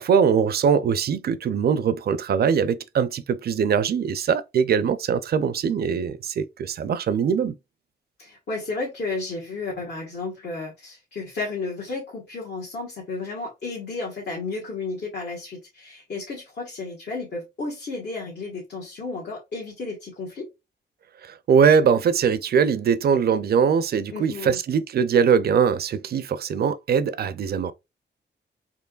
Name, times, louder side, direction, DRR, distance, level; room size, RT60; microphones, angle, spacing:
voice 1, 0.0-7.5 21.2-27.7, right 7 dB, 55° right, 0.4 m, -22 dB
voice 2, 8.2-20.5 24.1-24.6, left 3 dB, 65° left, 1.4 m, -33 dB
4.5 x 2.9 x 2.3 m
wide cardioid pair, 115°, 19 cm